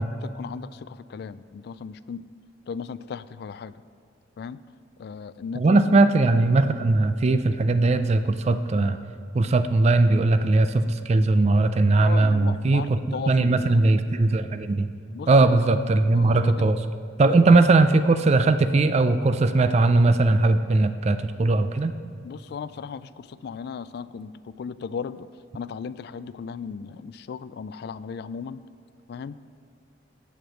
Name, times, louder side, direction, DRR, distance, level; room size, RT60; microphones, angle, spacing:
voice 1, 0.1-2.3 2.7-3.8 4.4-4.6 5.0-6.0 12.0-13.8 15.1-15.3 16.1-16.7 17.2-17.3 22.2-25.3 25.5-28.6 29.1-29.4, left 6 dB, 60° left, 15 dB, 0.3 m, -36 dB
voice 2, 5.6-9.0 9.3-14.9 15.3-16.9 17.2-21.9, right 2 dB, 35° right, 10 dB, 0.4 m, -19 dB
8.7 x 7.8 x 6.3 m, 2.5 s
head